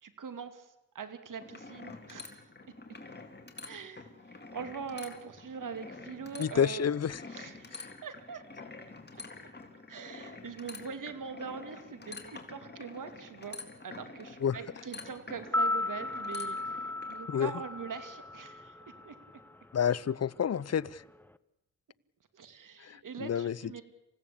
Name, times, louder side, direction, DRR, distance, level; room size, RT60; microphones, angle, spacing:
voice 1, 0.0-2.5 3.6-6.8 7.3-8.4 9.1-9.2 9.9-16.8 17.1-18.7 19.0-19.2 22.3-23.8, right 6 dB, 75° right, 10 dB, 2.5 m, -43 dB
sound 1, 1.4-17.2, left 3 dB, 30° left, 3.4 m, -47 dB
voice 2, 6.4-7.2 7.7-7.9 14.4-14.6 17.3-17.5 19.7-21.0 22.8-23.8, left 8 dB, 50° left, 21 dB, 0.7 m, -30 dB
sound 2, 15.4-19.6 19.8-19.9, left 2 dB, 5° left, 1.0 m, -35 dB
27.5 x 16.0 x 8.6 m, 0.94 s
cardioid pair, 65°, 32 cm